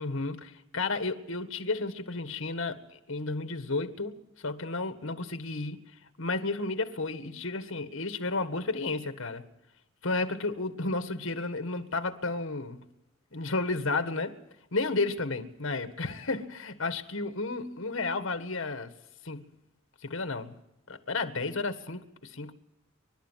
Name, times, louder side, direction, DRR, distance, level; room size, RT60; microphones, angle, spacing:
voice 1, 0.0-5.8 6.2-9.4 10.0-12.8 13.3-14.4 14.7-18.9 19.2-19.4 20.0-20.6 20.9-22.5, left 3 dB, 70° left, 1.7 m, -32 dB
29.0 x 12.5 x 7.5 m
head